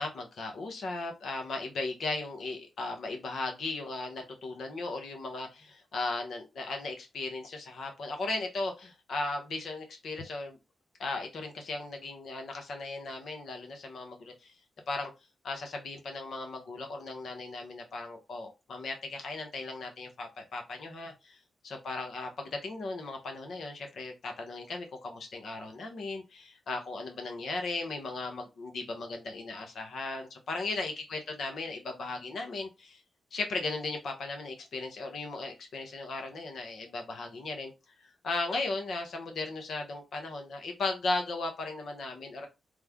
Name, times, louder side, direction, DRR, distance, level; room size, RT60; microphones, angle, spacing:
voice 1, 0.0-10.6 11.0-14.5 14.9-15.1 15.4-33.0 33.3-37.7 38.0-42.5, left 3 dB, 70° left, 4 dB, 1.0 m, -37 dB
3.3 x 2.2 x 3.5 m, 0.25 s
cardioid pair, 60°, 0 cm